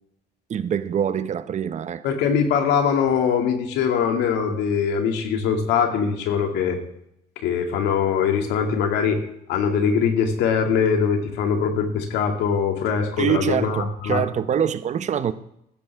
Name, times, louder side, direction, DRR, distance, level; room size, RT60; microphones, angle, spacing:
voice 1, 0.5-2.0 13.2-15.3, right 8 dB, 45° right, 0.8 m, -24 dB
voice 2, 2.0-6.8 7.4-9.2 9.5-14.2, left 6 dB, 85° left, 2.3 m, -22 dB
15.5 x 13.0 x 3.5 m
cardioid pair, 110°, 17 cm